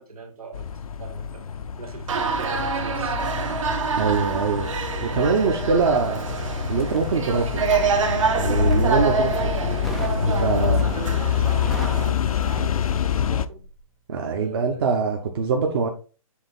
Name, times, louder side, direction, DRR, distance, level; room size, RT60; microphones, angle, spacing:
voice 1, 0.0-1.4 1.8-3.2 5.1-5.7 8.8-9.2 10.3-13.6 14.2-14.9, right 4 dB, 80° right, 2.4 m, -39 dB
sound 1, 0.5-13.5, left 7 dB, 75° left, 0.6 m, -26 dB
sound 2, 2.1-12.1, right 5 dB, 60° right, 1.6 m, -27 dB
voice 2, 4.0-4.7 5.0-6.2 6.7-7.7 8.4-9.3 10.2-10.8 14.1-15.9, right 5 dB, 40° right, 1.1 m, -23 dB
Crackle, 6.9-8.0 8.6-9.2 9.8-10.2 10.6-11.1 11.4-13.3 13.6-13.8, equal, ahead, 0.3 m, -36 dB
7.7 x 3.6 x 4.1 m
hypercardioid pair, 155°, 19 cm